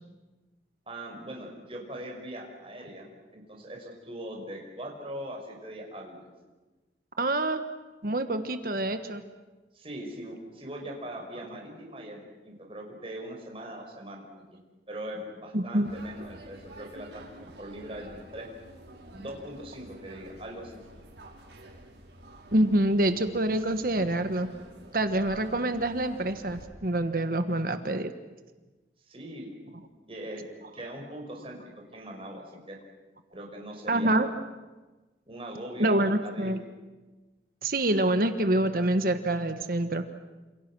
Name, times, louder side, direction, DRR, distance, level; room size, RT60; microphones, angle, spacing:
voice 1, 0.9-6.3 9.7-14.2 14.5-14.6 14.9-18.5 19.1-20.8 29.1-29.8 30.1-30.4 30.7-31.6 31.9-32.8 33.3-34.3 35.3-36.5, right 1 dB, 30° right, 0 dB, 5.6 m, -41 dB
voice 2, 7.2-7.6 8.0-9.2 15.5-15.9 22.5-24.5 24.9-28.1 33.9-34.3 35.8-36.6 37.6-40.0, right 1 dB, 55° right, 9 dB, 1.4 m, -26 dB
sound 1, 15.8-26.7, right 1 dB, 85° right, 6.0 m, -49 dB
28.5 x 28.0 x 6.2 m, 1.2 s
head